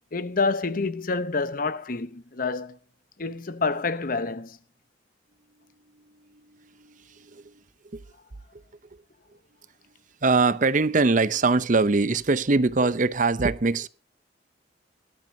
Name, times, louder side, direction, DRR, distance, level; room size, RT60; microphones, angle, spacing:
voice 1, 0.1-2.8 3.2-4.6, left 4 dB, 50° left, 0.9 m, -28 dB
voice 2, 6.3-7.5 7.9-8.0 10.2-13.9, right 3 dB, 45° right, 0.7 m, -23 dB
20.5 x 12.0 x 2.8 m
head